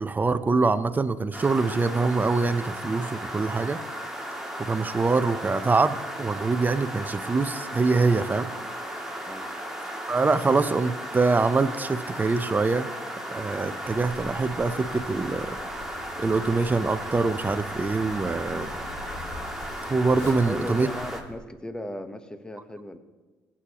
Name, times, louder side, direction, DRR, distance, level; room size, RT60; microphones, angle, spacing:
voice 1, 0.0-3.8 4.6-8.5 10.1-12.9 13.3-15.6 16.2-18.7 19.9-20.9, right 3 dB, 25° right, 12 dB, 0.7 m, -24 dB
sound 1, 1.3-21.2, right 1 dB, 5° right, 2.5 m, -35 dB
Zipper (clothing), 13.8-21.4, left 2 dB, 80° left, 2.8 m, -44 dB
voice 2, 20.2-23.0, equal, 10° left, 8 dB, 1.2 m, -37 dB
16.5 x 8.6 x 3.0 m, 1.3 s
supercardioid pair, 65°, 7 cm